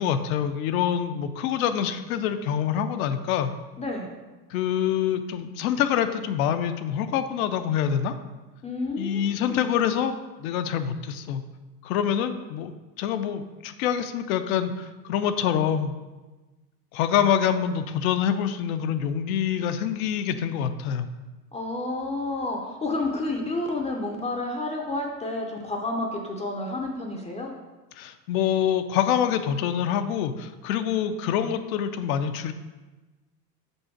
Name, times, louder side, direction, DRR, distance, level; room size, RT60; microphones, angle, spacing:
voice 1, 0.0-3.5 4.5-8.1 9.0-10.1 10.4-11.4 11.8-12.7 13.0-15.9 16.9-21.1 28.0-32.5, left 9 dB, 60° left, 9 dB, 0.6 m, -26 dB
voice 2, 3.8-4.1 8.6-9.7 21.5-27.5, left 2 dB, 15° left, 1 dB, 0.6 m, -30 dB
5.4 x 3.8 x 5.8 m, 1.2 s
hypercardioid pair, 105°, 49 cm